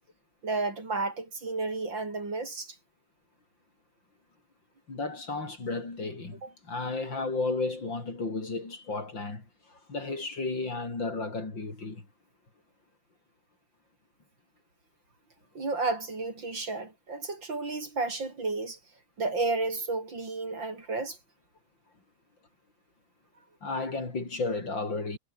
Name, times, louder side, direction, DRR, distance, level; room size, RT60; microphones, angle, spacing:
voice 1, 0.4-2.8 6.4-6.5 15.5-18.8 19.2-21.2, right 3 dB, 80° right, 5.9 m, -32 dB
voice 2, 4.9-12.0 23.6-25.2, left 3 dB, 75° left, 5.9 m, -33 dB
omnidirectional pair, 2.0 m